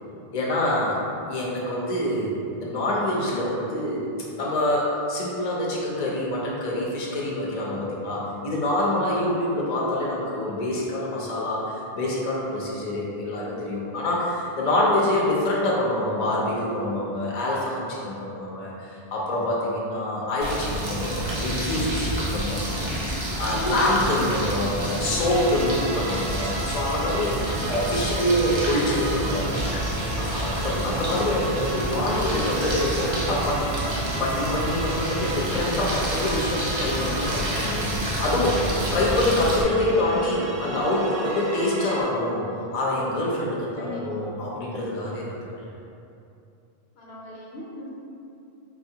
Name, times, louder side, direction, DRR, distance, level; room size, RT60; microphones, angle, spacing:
voice 1, 0.3-1.0 1.3-4.0 4.4-22.8 23.4-29.7 30.2-33.7 34.2-37.9 38.2-38.6 38.9-45.4, left 1 dB, 45° left, -5 dB, 0.7 m, -26 dB
sound 1, 20.4-39.6, right 1 dB, 50° right, 0.3 m, -29 dB
voice 2, 22.7-23.4 43.8-44.2 47.0-47.9, left 1 dB, 75° left, -5 dB, 1.0 m, -40 dB
sound 2, 25.0-42.0, right 2 dB, 70° right, 0.8 m, -34 dB
4.9 x 2.4 x 2.7 m, 2.7 s
omnidirectional pair, 1.1 m